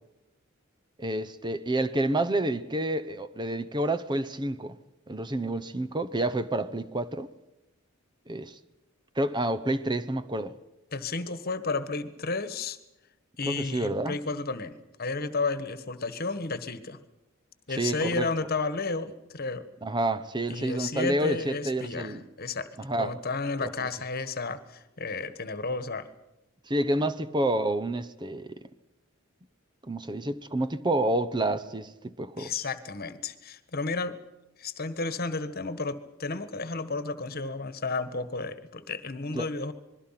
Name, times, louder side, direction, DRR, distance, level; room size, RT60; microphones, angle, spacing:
voice 1, 1.0-4.8 5.1-7.3 8.3-8.6 9.2-10.5 13.5-14.2 17.8-18.3 19.8-22.2 22.8-23.1 23.6-23.9 26.7-28.6 29.9-32.5 39.3-39.5, right 1 dB, 20° right, 0.9 m, -29 dB
voice 2, 10.9-12.8 13.4-14.7 15.0-17.0 17.7-19.7 20.5-26.1 27.0-27.1 32.4-34.1 34.6-39.7, left 3 dB, 45° left, 1.5 m, -32 dB
27.0 x 21.5 x 5.9 m
head